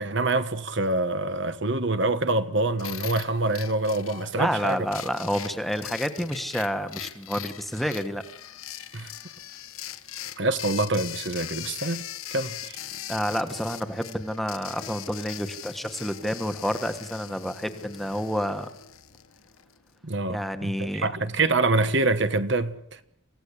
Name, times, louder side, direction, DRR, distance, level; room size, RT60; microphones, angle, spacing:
voice 1, 0.0-4.9 8.9-9.1 10.4-12.0 12.3-12.8 20.0-23.0, right 2 dB, 55° right, 1.4 m, -26 dB
sound 1, 2.8-19.8, left 12 dB, 85° left, 1.4 m, -40 dB
voice 2, 4.3-8.2 13.1-18.7 20.3-21.1, equal, ahead, 1.4 m, -29 dB
28.0 x 16.5 x 8.4 m
head